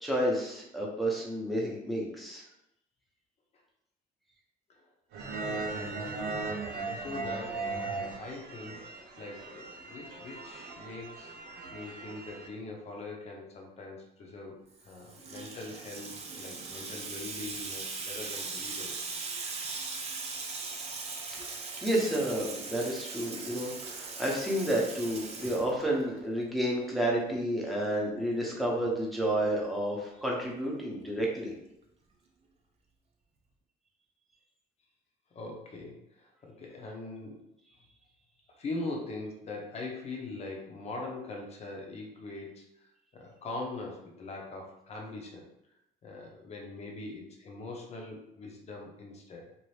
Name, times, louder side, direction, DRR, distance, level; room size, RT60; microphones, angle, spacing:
voice 1, 0.0-2.4 21.8-31.5, right 1 dB, ahead, -3 dB, 0.9 m, -30 dB
sound 1, 5.1-12.5, right 3 dB, 80° right, 0.7 m, -38 dB
voice 2, 5.3-8.9 9.2-11.3 11.7-19.0 35.3-37.4 38.6-42.9 43.1-45.4 46.0-49.5, left 2 dB, 40° left, 0 dB, 0.7 m, -42 dB
Water tap faucet / Sink (filling or washing), 14.8-26.2, right 4 dB, 40° right, 0.6 m, -39 dB
2.7 x 2.5 x 3.2 m, 0.84 s
cardioid pair, 110°, 17 cm